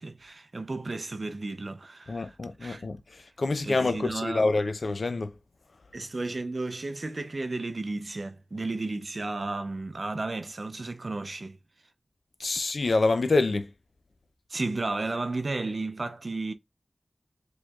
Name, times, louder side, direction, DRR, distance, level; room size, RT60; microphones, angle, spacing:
voice 1, 0.0-2.9 3.6-4.4 5.9-11.6 14.5-16.5, right 2 dB, 60° right, 0.4 m, -33 dB
voice 2, 2.1-5.3 12.4-13.7, left 3 dB, 75° left, 0.4 m, -27 dB
4.3 x 3.1 x 2.3 m
wide cardioid pair, 70°, 0 cm